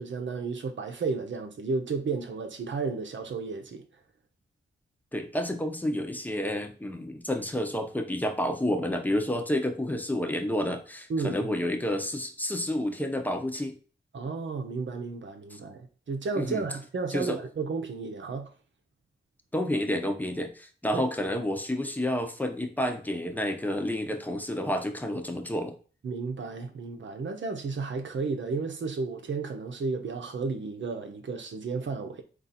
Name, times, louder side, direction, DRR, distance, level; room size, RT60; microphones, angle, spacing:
voice 1, 0.0-3.8 11.1-11.6 14.1-18.5 20.9-21.0 26.0-32.2, right 4 dB, 65° right, 0.9 m, -33 dB
voice 2, 5.1-13.7 16.4-16.6 17.1-17.4 19.5-25.7, left 1 dB, 10° left, 0.9 m, -30 dB
3.8 x 2.7 x 4.2 m
cardioid pair, 50°, 21 cm